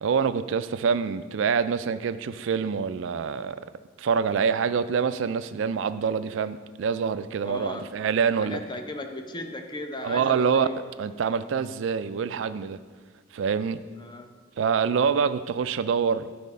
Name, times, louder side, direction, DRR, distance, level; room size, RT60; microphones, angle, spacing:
voice 1, 0.0-3.6 4.0-8.6 10.0-10.7 11.0-12.8 13.3-13.8 14.6-16.3, right 6 dB, 70° right, 13 dB, 0.3 m, -26 dB
voice 2, 7.4-7.9 8.4-10.9 13.9-14.4, left 2 dB, 25° left, 5 dB, 0.6 m, -36 dB
10.5 x 4.2 x 5.4 m, 1.5 s
head